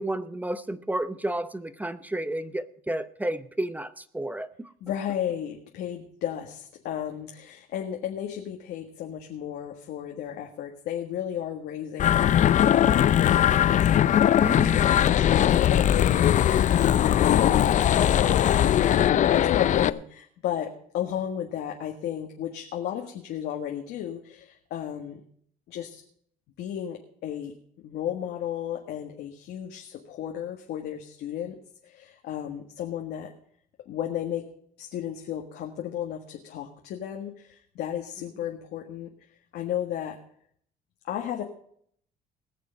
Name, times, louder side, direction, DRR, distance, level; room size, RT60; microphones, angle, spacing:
voice 1, 0.0-4.7 14.4-14.8, right 1 dB, 10° right, 13 dB, 0.7 m, -31 dB
voice 2, 4.8-25.2 25.7-26.0 26.6-27.5 27.8-31.6 31.8-33.3 33.9-34.4 34.8-39.1 39.5-40.2 41.0-41.4, left 10 dB, 75° left, 2 dB, 1.7 m, -34 dB
sound 1, 12.0-19.9, left 10 dB, 45° left, 0.5 m, -20 dB
19.5 x 6.8 x 5.3 m, 0.63 s
cardioid pair, 110°, 17 cm